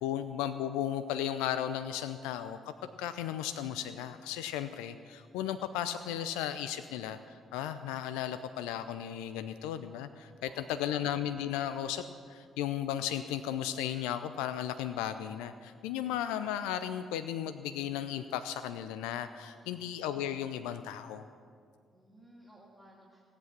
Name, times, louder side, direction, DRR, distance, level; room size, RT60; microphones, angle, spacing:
voice 1, 0.0-21.3, left 10 dB, 75° left, 11 dB, 0.4 m, -35 dB
voice 2, 10.4-10.9 19.6-19.9 21.9-23.2, right 1 dB, 5° right, -5 dB, 2.7 m, -57 dB
16.5 x 8.2 x 7.4 m, 2.2 s
figure-of-eight pair, 45°, 0 cm